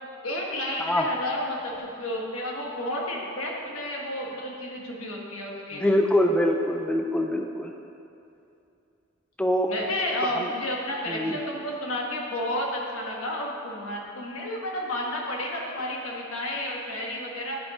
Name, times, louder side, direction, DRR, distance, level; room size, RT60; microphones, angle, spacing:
voice 1, 0.2-5.9 9.7-17.6, left 1 dB, 85° left, -2 dB, 1.5 m, -31 dB
voice 2, 5.7-7.7 9.4-9.7 10.4-10.5 11.1-11.4, left 1 dB, 5° left, 3 dB, 0.4 m, -24 dB
10.5 x 5.9 x 4.9 m, 2.7 s
head